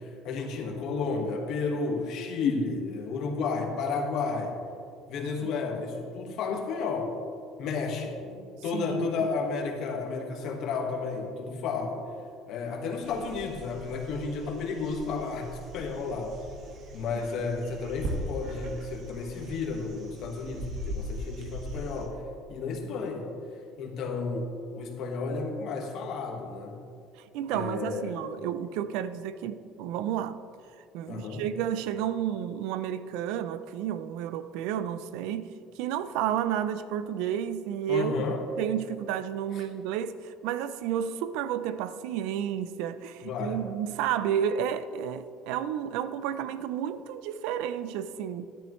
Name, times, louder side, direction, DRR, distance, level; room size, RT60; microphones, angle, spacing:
voice 1, 0.0-4.6 5.1-7.1 7.6-12.0 12.5-16.3 16.9-22.2 22.5-23.3 23.8-24.5 24.7-26.8 27.5-28.2 31.1-31.4 37.9-38.4 39.5-39.6 43.2-43.6, left 4 dB, 60° left, 1.5 m, -32 dB
voice 2, 8.7-9.1 27.3-30.4 30.9-38.1 38.6-48.5, right 9 dB, 80° right, 0.4 m, -31 dB
sound 1, 13.0-22.1, equal, 50° right, 1.5 m, -40 dB
11.5 x 10.0 x 3.1 m
cardioid pair, 115°, 0 cm